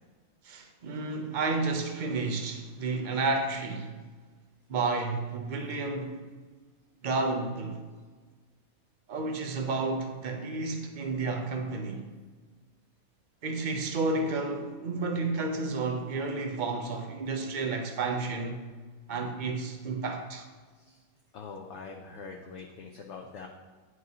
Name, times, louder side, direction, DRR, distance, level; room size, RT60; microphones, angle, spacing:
voice 1, 0.4-4.0 4.7-6.2 7.0-7.8 9.1-12.1 13.4-18.6 19.1-20.4, right 3 dB, 70° right, 0.4 m, -31 dB
voice 2, 21.3-23.5, left 4 dB, 65° left, 0.8 m, -44 dB
9.2 x 4.7 x 2.8 m
omnidirectional pair, 1.5 m